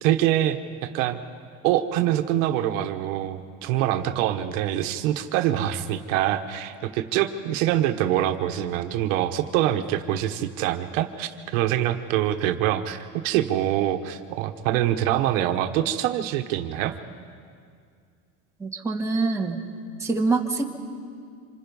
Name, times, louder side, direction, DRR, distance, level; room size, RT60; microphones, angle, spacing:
voice 1, 0.0-1.2 1.6-16.9, right 12 dB, 75° right, 7 dB, 1.3 m, -25 dB
voice 2, 18.6-19.6 20.0-20.6, right 3 dB, 5° right, -2 dB, 1.8 m, -25 dB
27.0 x 26.5 x 5.5 m, 2.2 s
cardioid pair, 155°, 39 cm